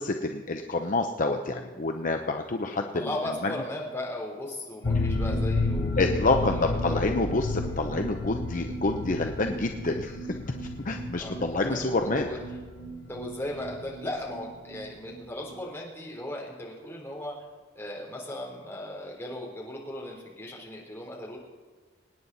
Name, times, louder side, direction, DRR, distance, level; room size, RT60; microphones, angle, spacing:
voice 1, 0.0-3.1 3.4-3.5 6.0-10.2 10.5-12.3, left 2 dB, 45° left, 4 dB, 0.8 m, -28 dB
voice 2, 2.9-7.0 11.2-12.4 13.1-17.4 17.8-21.4, left 1 dB, 10° left, -3 dB, 3.6 m, -37 dB
sound 1, 4.8-14.4 14.7-14.8 15.1-15.2, left 2 dB, 75° left, 1.0 m, -32 dB
25.5 x 9.6 x 4.1 m, 1.5 s
head